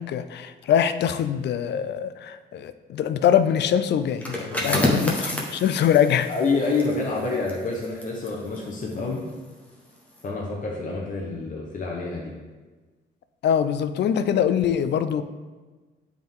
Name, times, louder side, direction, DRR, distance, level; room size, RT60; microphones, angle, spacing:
voice 1, 0.0-6.3 13.4-15.2, left 9 dB, 60° left, 12 dB, 0.4 m, -23 dB
sound 1, 4.1-9.6 10.0-10.2, equal, 5° left, 1.1 m, -30 dB
voice 2, 4.6-5.0 6.3-9.2 10.2-12.3, left 3 dB, 40° left, -3 dB, 1.0 m, -27 dB
7.8 x 3.7 x 3.6 m, 1.3 s
cardioid pair, 90°, 20 cm